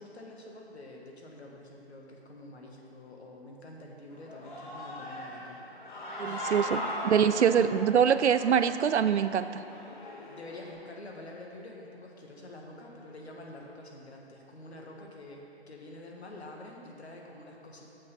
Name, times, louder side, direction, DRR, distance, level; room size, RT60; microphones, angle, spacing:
voice 1, 0.0-5.6 5.9-6.9 7.5-7.7 10.3-17.9, left 1 dB, 75° left, -1 dB, 1.6 m, -47 dB
Human voice / Cheering, 4.1-10.7, equal, 45° left, 1.5 m, -39 dB
voice 2, 6.2-6.8 7.1-9.6, right 8 dB, 85° right, 13 dB, 0.5 m, -24 dB
7.7 x 6.0 x 5.4 m, 3.0 s
figure-of-eight pair, 150°, 33 cm